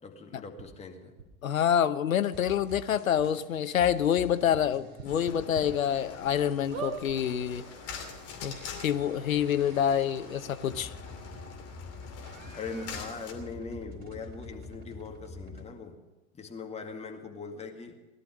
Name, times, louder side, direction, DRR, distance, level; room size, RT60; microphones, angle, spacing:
voice 1, 0.0-1.1 12.5-16.0 16.4-18.0, left 4 dB, 15° left, 3 dB, 2.0 m, -41 dB
sound 1, 0.6-0.7 1.2-1.3 2.2-2.3 2.7-2.8 3.2-3.3 4.9-5.6 6.1-6.2 6.7-7.0 7.8-7.9 8.1-8.2, right 7 dB, 60° right, 2.3 m, -38 dB
voice 2, 1.4-7.6 8.4-10.9, left 9 dB, 70° left, 12 dB, 0.8 m, -27 dB
sound 2, 2.3-5.3 5.7-15.7, left 2 dB, 20° right, 3.6 m, -48 dB
sound 3, 5.0-13.3, left 6 dB, 35° left, 2.7 m, -45 dB
18.0 x 12.0 x 6.3 m, 1.1 s
figure-of-eight pair, 90°, 42 cm